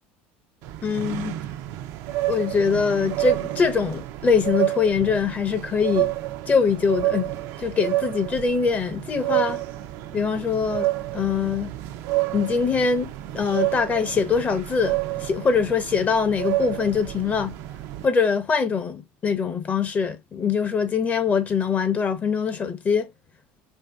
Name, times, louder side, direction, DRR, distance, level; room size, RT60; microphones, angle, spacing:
sound 1, 0.6-18.1, right 16 dB, 65° right, 0.4 m, -29 dB
voice 1, 0.8-1.4 2.3-6.1 6.5-7.3 7.6-9.6 10.1-11.7 12.3-17.5 18.0-23.1, left 5 dB, 30° left, 0.6 m, -23 dB
2.7 x 2.5 x 3.4 m
supercardioid pair, 105°, 6 cm